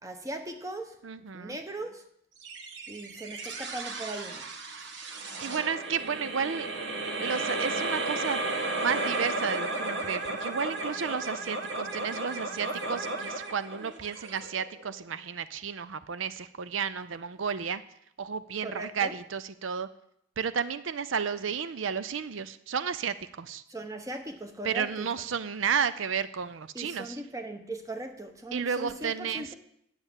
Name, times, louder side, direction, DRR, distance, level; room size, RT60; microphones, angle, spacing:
voice 1, 0.0-1.0 1.3-2.0 2.9-4.5 18.6-19.1 23.7-25.1 26.7-29.6, right 1 dB, 15° right, 6 dB, 1.1 m, -39 dB
voice 2, 1.0-1.6 5.4-6.7 7.2-8.4 8.8-17.8 18.2-19.9 20.4-23.6 24.6-27.2 28.5-29.5, right 6 dB, 85° right, 14 dB, 0.6 m, -32 dB
sound 1, 2.4-15.0, right 2 dB, 70° right, 1.5 m, -34 dB
10.0 x 8.0 x 7.3 m, 0.72 s
head